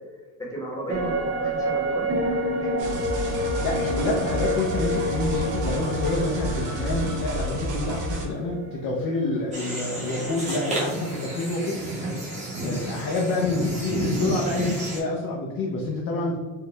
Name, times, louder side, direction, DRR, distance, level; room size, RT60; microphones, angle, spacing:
voice 1, 0.4-3.0, right 1 dB, 10° left, -4 dB, 1.0 m, -35 dB
sound 1, 0.9-10.4 10.7-10.8, equal, 35° right, 0.7 m, -29 dB
sound 2, 2.8-8.3, right 2 dB, 90° right, 1.3 m, -30 dB
voice 2, 3.6-11.8 12.6-16.4, left 2 dB, 50° left, -1 dB, 0.7 m, -27 dB
sound 3, 9.5-15.0, right 1 dB, 15° right, 1.0 m, -30 dB
4.6 x 2.4 x 3.2 m, 1.4 s
cardioid pair, 160°, 43 cm